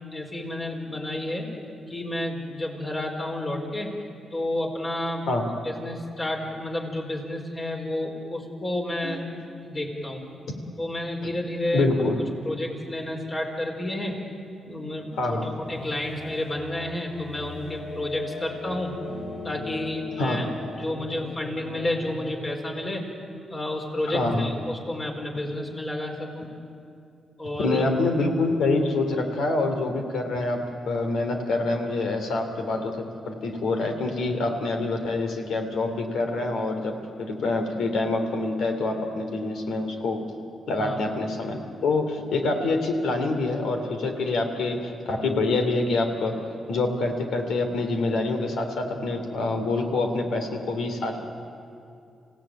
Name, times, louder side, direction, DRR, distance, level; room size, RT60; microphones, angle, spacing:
voice 1, 0.1-1.5 1.9-4.0 4.3-5.3 5.6-9.3 9.6-10.2 10.8-11.9 12.4-14.2 14.6-19.0 19.4-20.4 20.8-23.1 23.5-26.5 27.4-27.8 40.8-41.0, left 1 dB, 35° left, 1 dB, 4.7 m, -30 dB
voice 2, 11.7-12.2 15.2-15.5 20.2-20.4 24.1-24.5 27.6-40.2 40.7-46.4 46.7-51.2, left 2 dB, 85° left, 5 dB, 3.1 m, -26 dB
sound 1, 15.6-22.5, left 3 dB, 55° left, 2.2 m, -39 dB
27.5 x 17.0 x 9.1 m, 2.6 s
cardioid pair, 85°, 0 cm